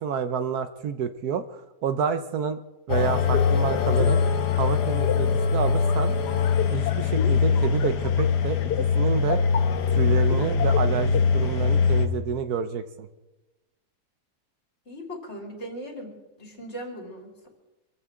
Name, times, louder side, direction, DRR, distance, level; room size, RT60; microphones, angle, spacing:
voice 1, 0.0-2.6 2.9-4.2 4.6-6.1 6.7-9.4 9.9-13.1, right 7 dB, 70° right, 10 dB, 1.3 m, -29 dB
sound 1, 2.9-12.1, left 5 dB, 85° left, 1.6 m, -22 dB
voice 2, 14.9-17.5, equal, 40° left, 1 dB, 3.6 m, -39 dB
25.0 x 15.5 x 3.7 m, 1.1 s
omnidirectional pair, 1.7 m